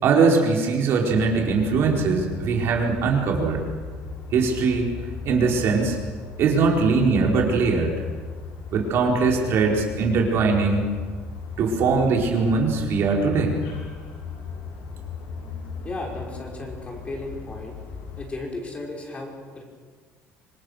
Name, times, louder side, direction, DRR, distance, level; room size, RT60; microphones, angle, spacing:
voice 1, 0.0-3.7 4.3-4.9 5.2-6.0 6.4-8.0 8.7-10.9 11.6-13.6, right 4 dB, 60° right, 0 dB, 4.6 m, -21 dB
sound 1, 1.1-18.3, left 4 dB, 85° left, 6.5 m, -37 dB
voice 2, 15.8-17.8 18.2-19.6, left 2 dB, 25° left, 0 dB, 5.6 m, -35 dB
26.0 x 19.5 x 6.6 m, 1.5 s
cardioid pair, 110°, 5 cm